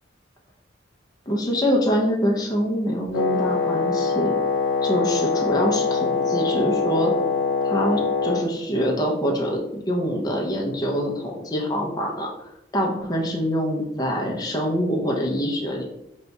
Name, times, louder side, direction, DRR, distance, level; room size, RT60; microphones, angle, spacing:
voice 1, 1.3-4.3 4.8-7.1 7.6-12.3 12.7-15.8, equal, 20° left, -1 dB, 0.4 m, -25 dB
Wind instrument woodwind instrument, 3.1-8.5, left 4 dB, 80° left, 0.4 m, -23 dB
2.6 x 2.2 x 4.0 m, 0.81 s
head